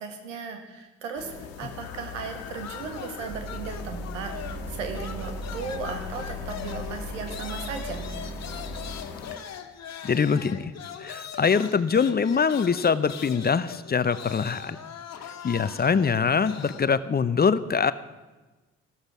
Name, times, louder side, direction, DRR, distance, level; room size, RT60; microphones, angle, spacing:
voice 1, 0.0-8.1, right 5 dB, 85° right, 6 dB, 1.8 m, -36 dB
sound 1, 1.2-9.4, left 6 dB, 65° left, 1.5 m, -41 dB
sound 2, 2.6-4.7 4.9-16.9, left 8 dB, 45° left, 1.8 m, -41 dB
sound 3, 3.2-8.9, equal, 65° right, 4.4 m, -38 dB
voice 2, 10.0-10.7 11.0-14.8 15.4-17.9, left 6 dB, 25° left, 15 dB, 0.7 m, -23 dB
15.0 x 13.0 x 6.1 m, 1.2 s
hypercardioid pair, 50°, 37 cm